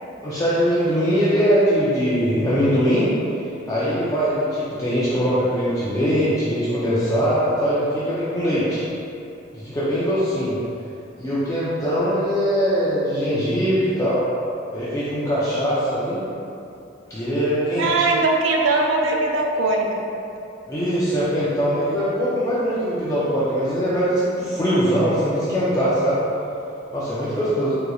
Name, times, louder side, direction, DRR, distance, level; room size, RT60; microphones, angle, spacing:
voice 1, 0.2-3.1 3.7-8.8 9.5-10.6 11.2-14.2 14.7-16.2 17.1-18.1 20.7-26.2 26.9-27.7, equal, 15° left, -11 dB, 0.5 m, -21 dB
voice 2, 17.8-20.1, right 2 dB, 65° right, 0 dB, 0.4 m, -20 dB
3.8 x 2.9 x 2.3 m, 2.7 s
head